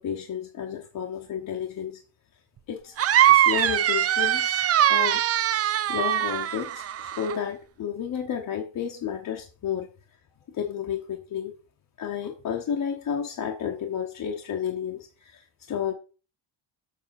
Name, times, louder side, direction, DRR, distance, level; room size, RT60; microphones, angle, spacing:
voice 1, 0.0-2.0 2.7-5.3 5.9-9.9 10.5-11.5 12.0-15.9, left 8 dB, 40° left, 1 dB, 1.1 m, -32 dB
sound 1, 3.0-7.4, right 11 dB, 35° right, 0.4 m, -22 dB
7.4 x 5.8 x 5.8 m, 0.35 s
cardioid pair, 180°, 49 cm